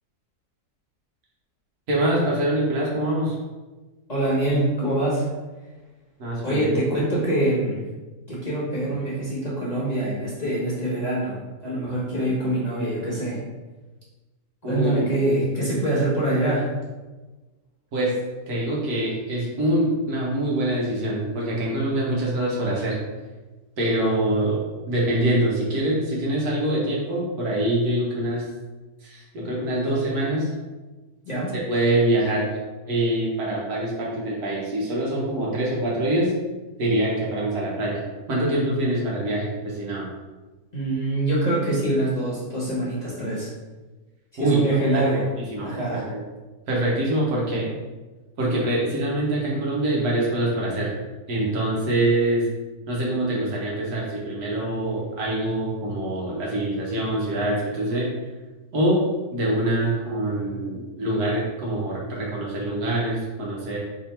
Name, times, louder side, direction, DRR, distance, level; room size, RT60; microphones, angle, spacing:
voice 1, 1.9-3.4 6.2-6.7 14.6-15.0 17.9-18.2 18.5-23.0 23.8-28.5 29.0-30.5 31.5-32.6 32.9-36.3 36.8-38.0 38.3-40.1 44.4-45.0 45.5-45.7 46.1-46.2 46.7-47.7 48.4-50.9 51.3-52.5 52.9-58.1 58.7-59.0 59.3-63.8, right 1 dB, 75° right, -4 dB, 1.7 m, -24 dB
voice 2, 4.1-5.3 6.4-7.8 8.3-13.4 14.6-16.7 31.2-31.5 40.7-43.5 44.3-45.3 45.6-46.1, right 1 dB, 30° left, -7 dB, 1.0 m, -24 dB
3.6 x 3.4 x 4.4 m, 1.2 s
omnidirectional pair, 1.7 m